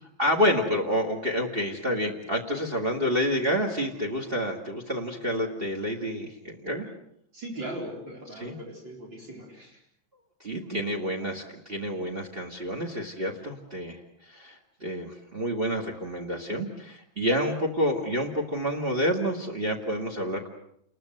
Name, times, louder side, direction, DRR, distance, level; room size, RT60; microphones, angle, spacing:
voice 1, 0.2-6.9 8.3-8.6 10.4-14.0 14.3-20.5, equal, 30° right, 6 dB, 2.3 m, -28 dB
voice 2, 7.3-9.8, right 1 dB, 70° right, -1 dB, 5.2 m, -39 dB
29.0 x 21.5 x 7.9 m, 0.70 s
omnidirectional pair, 2.1 m